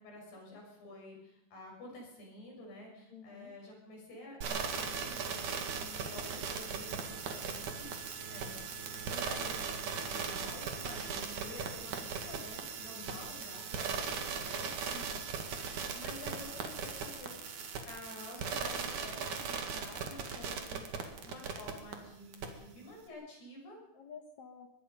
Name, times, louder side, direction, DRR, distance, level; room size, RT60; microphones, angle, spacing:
voice 1, 0.0-8.6 9.0-14.7 15.9-23.8, left 1 dB, 75° left, 0 dB, 8.7 m, -50 dB
voice 2, 3.1-3.5 12.9-13.2 14.9-15.3 20.3-20.6 23.9-24.7, left 7 dB, 60° left, 6 dB, 2.0 m, -52 dB
sound 1, 4.4-21.9 22.3-22.5, right 6 dB, 55° right, 3.2 m, -38 dB
23.0 x 20.5 x 5.5 m, 0.85 s
omnidirectional pair, 4.7 m